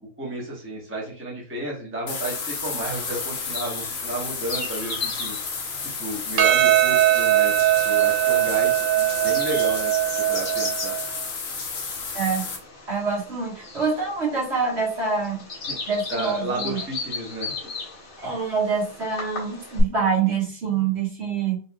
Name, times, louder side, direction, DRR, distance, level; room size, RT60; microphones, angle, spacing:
voice 1, 0.0-5.4 5.8-10.9 15.7-17.5, right 1 dB, 10° right, -4 dB, 0.9 m, -32 dB
sound 1, 2.1-12.6, left 5 dB, 55° left, 0.9 m, -32 dB
Bird vocalization bird call bird song, 2.8-19.8, left 3 dB, 85° left, 1.6 m, -37 dB
Percussion, 6.4-11.0, right 14 dB, 75° right, 1.0 m, -20 dB
voice 2, 12.1-12.5 12.9-15.4 15.8-16.8 18.2-21.6, right 5 dB, 55° right, -5 dB, 1.6 m, -26 dB
3.9 x 3.0 x 2.2 m, 0.42 s
omnidirectional pair, 1.4 m